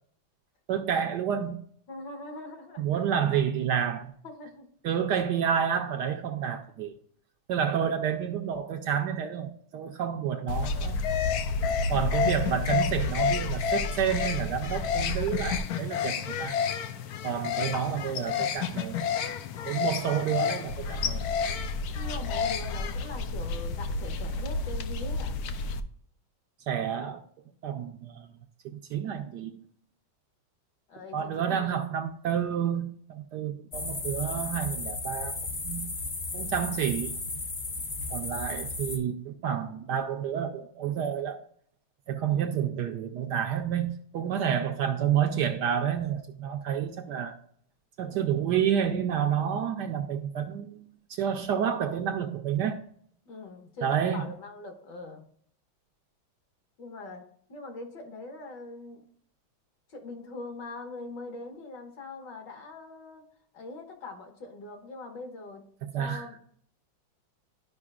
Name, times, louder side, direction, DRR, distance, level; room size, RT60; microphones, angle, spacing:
voice 1, 0.7-1.6 2.8-4.1 4.8-6.9 7.5-11.0 11.9-16.6 17.2-19.0 19.6-21.2 26.7-27.2 27.6-28.3 28.6-29.6 31.1-35.4 35.6-35.9 36.3-37.2 38.1-41.4 42.1-47.4 48.0-50.7 51.1-52.8 53.8-54.3 65.8-66.3, right 8 dB, 70° right, 1.1 m, -29 dB
voice 2, 1.9-2.8 4.2-4.7 19.5-19.8 21.9-25.4 30.9-31.9 42.3-42.6 53.3-55.2 56.8-59.0 59.9-63.2 63.5-65.6 65.9-66.4, left 2 dB, 65° left, 1.9 m, -42 dB
sound 1, 10.5-25.8, left 5 dB, 80° left, 0.8 m, -30 dB
sound 2, 33.7-39.0, left 3 dB, 35° left, 0.8 m, -34 dB
12.5 x 5.1 x 2.4 m
omnidirectional pair, 2.2 m